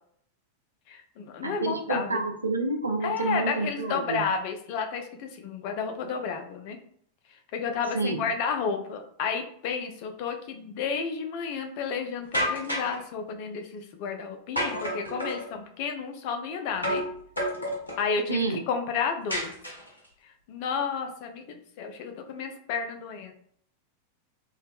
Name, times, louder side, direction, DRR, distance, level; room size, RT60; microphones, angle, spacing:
voice 1, 0.9-2.2 3.0-6.8 7.5-17.1 18.0-19.5 20.5-23.3, left 5 dB, 45° left, 5 dB, 0.4 m, -31 dB
voice 2, 1.4-4.2 7.9-8.3 18.3-18.6, right 3 dB, 80° right, 3 dB, 0.4 m, -29 dB
sound 1, 12.3-13.0 14.6-15.4 16.8-17.1 17.4-18.0 19.3-20.1, equal, 85° left, 0.7 m, -29 dB
3.1 x 2.0 x 2.3 m, 0.63 s
figure-of-eight pair, 90°, 0 cm